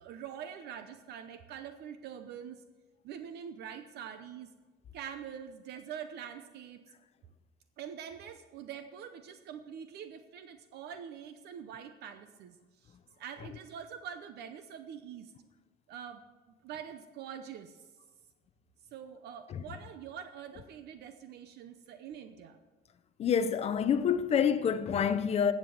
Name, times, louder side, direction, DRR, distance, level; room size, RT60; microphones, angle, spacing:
voice 1, 0.0-2.6 3.0-4.5 4.9-6.8 7.8-15.3 15.9-16.2 16.6-17.9 18.9-22.6, right 8 dB, 60° right, 0.8 m, -45 dB
voice 2, 23.2-25.5, left 7 dB, 35° left, 0.6 m, -27 dB
11.0 x 7.5 x 7.1 m
cardioid pair, 150°, 19 cm